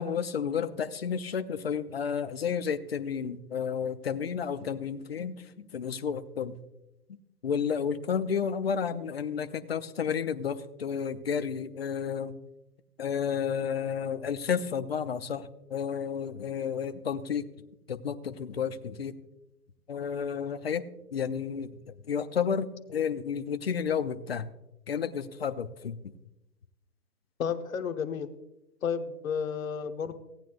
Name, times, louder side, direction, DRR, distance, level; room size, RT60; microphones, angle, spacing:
voice 1, 0.0-5.5 5.7-6.6 7.4-12.3 13.0-17.4 17.9-19.1 19.9-20.8 21.1-21.7 22.1-24.5 24.9-26.1, left 7 dB, 40° left, 10 dB, 0.5 m, -31 dB
voice 2, 27.4-28.3 28.8-30.1, left 6 dB, 55° left, 8 dB, 1.1 m, -32 dB
17.0 x 9.1 x 2.5 m, 0.90 s
hypercardioid pair, 165°, 48 cm